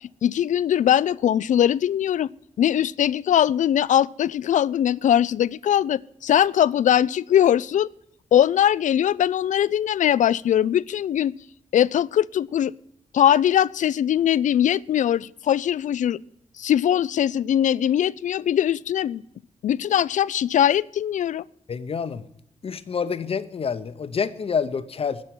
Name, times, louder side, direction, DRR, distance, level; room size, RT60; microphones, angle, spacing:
voice 1, 0.0-2.3 2.6-7.9 8.3-11.3 11.7-12.7 13.1-16.2 16.6-19.2 19.6-21.4, left 10 dB, 80° left, 0.4 m, -21 dB
voice 2, 21.7-22.2 22.6-25.2, left 6 dB, 50° left, 0.8 m, -27 dB
10.5 x 7.2 x 9.4 m
wide cardioid pair, 110°, 13 cm